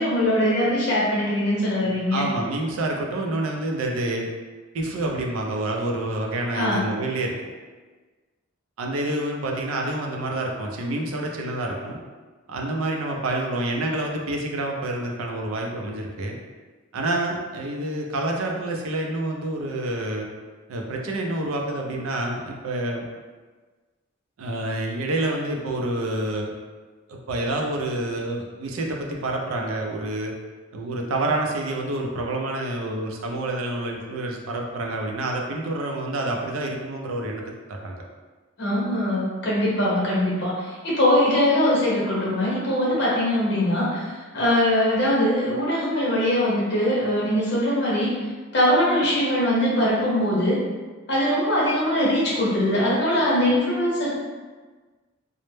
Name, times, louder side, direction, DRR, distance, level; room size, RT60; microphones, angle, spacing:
voice 1, 0.0-2.2 6.5-6.8 38.6-48.1 48.5-50.6 51.1-54.2, left 1 dB, 55° left, -6 dB, 0.8 m, -22 dB
voice 2, 2.1-4.3 4.7-7.3 8.8-12.0 12.5-16.4 16.9-20.3 20.7-23.0 24.4-26.5 27.1-30.3 30.7-37.4 37.8-38.0, right 2 dB, 80° right, 1 dB, 0.4 m, -28 dB
2.0 x 2.0 x 3.0 m, 1.4 s
head